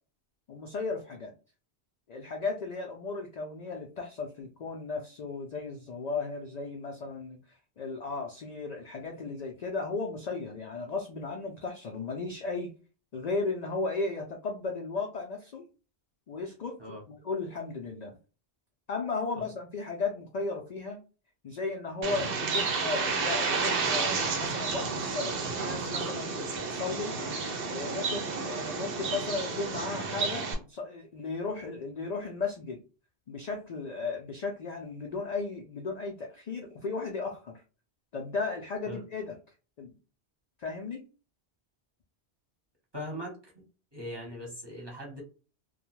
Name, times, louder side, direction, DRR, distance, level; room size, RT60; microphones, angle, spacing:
voice 1, 0.5-1.3 2.1-7.4 7.8-12.7 13.1-15.7 16.3-16.8 17.1-18.2 18.9-21.0 21.4-27.2 27.7-32.8 33.3-37.6 38.1-39.4 39.8-39.9 40.6-41.1, left 4 dB, 60° left, 2 dB, 0.4 m, -35 dB
Bird, 22.0-30.5, right 4 dB, 60° right, 0.7 m, -31 dB
voice 2, 42.9-43.6 43.9-45.2, equal, 25° right, -3 dB, 0.9 m, -40 dB
2.3 x 2.1 x 2.9 m, 0.34 s
omnidirectional pair, 1.1 m